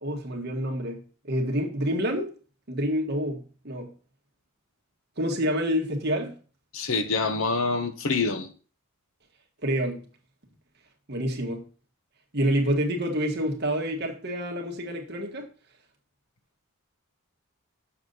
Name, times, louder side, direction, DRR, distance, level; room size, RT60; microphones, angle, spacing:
voice 1, 0.0-2.3 2.7-3.9 5.2-6.3 9.6-10.0 11.1-11.6 12.3-15.5, equal, 50° right, 1.5 m, -28 dB
voice 2, 6.7-8.5, left 4 dB, 65° left, 1.0 m, -26 dB
7.0 x 6.7 x 3.9 m
head